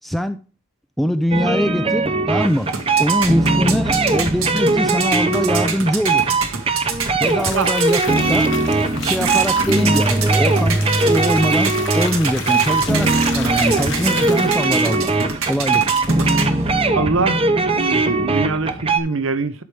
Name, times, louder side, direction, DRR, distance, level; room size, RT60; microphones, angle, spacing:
voice 1, 0.0-0.4 1.0-2.7 3.0-6.3 7.2-8.5 8.9-15.1 15.5-15.8, equal, ahead, 0.4 m, -23 dB
Guitar and Piano Music, 1.3-19.0, right 3 dB, 25° right, 0.7 m, -19 dB
sound 1, 2.4-16.9, right 5 dB, 90° right, 1.6 m, -28 dB
sound 2, 6.9-14.9 15.2-15.6, left 5 dB, 60° left, 1.1 m, -33 dB
voice 2, 16.9-17.4 17.7-19.6, right 4 dB, 70° right, 0.7 m, -23 dB
11.5 x 4.8 x 3.3 m
head